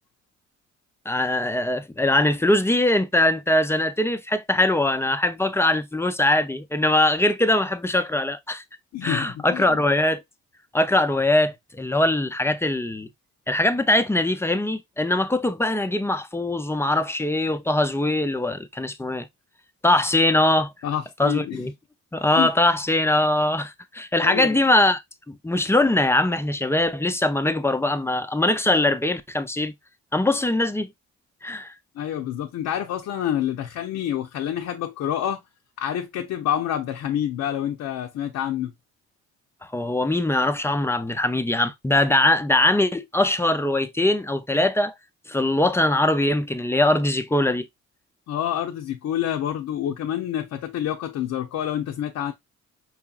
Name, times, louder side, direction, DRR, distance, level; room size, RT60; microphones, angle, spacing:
voice 1, 1.1-8.6 9.0-10.2 10.7-13.1 13.5-19.3 19.8-20.7 21.2-21.7 22.1-25.0 25.3-29.7 30.1-30.9 31.4-31.7 39.7-44.9 45.3-47.7, left 1 dB, 10° left, 0.4 m, -22 dB
voice 2, 8.9-9.8 20.8-21.7 22.4-22.5 24.2-24.6 32.0-35.4 35.8-38.7 48.3-52.3, left 10 dB, 65° left, 0.6 m, -27 dB
4.7 x 2.9 x 2.3 m
cardioid pair, 90°, 30 cm